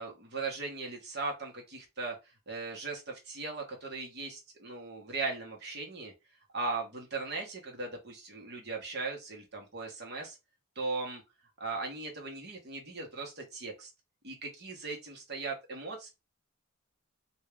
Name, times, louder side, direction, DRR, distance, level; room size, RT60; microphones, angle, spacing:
voice 1, 0.0-2.1 2.5-6.1 6.5-10.4 10.8-11.2 11.6-13.9 14.2-16.1, right 3 dB, 50° right, 1.2 m, -38 dB
3.5 x 2.6 x 3.4 m
head